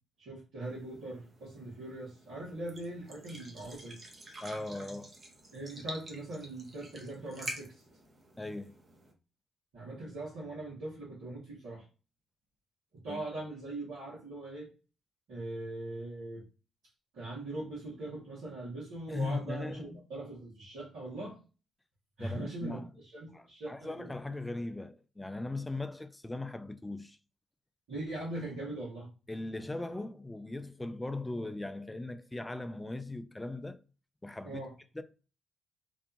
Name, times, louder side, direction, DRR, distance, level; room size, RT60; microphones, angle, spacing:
voice 1, 0.2-4.0 5.5-7.8 9.7-11.8 13.0-14.7 15.3-16.4 17.1-21.4 22.2-24.1 27.9-29.1 34.4-34.7, right 2 dB, 75° right, 1.2 m, -41 dB
sound 1, 0.6-9.1, right 1 dB, 40° right, 0.8 m, -48 dB
voice 2, 4.4-5.2 8.4-8.7 13.1-13.2 19.1-20.0 22.2-22.9 23.3-27.2 29.3-33.8 34.2-34.6 34.9-35.0, left 2 dB, 15° left, 0.3 m, -39 dB
2.7 x 2.3 x 2.5 m
hypercardioid pair, 45°, 0 cm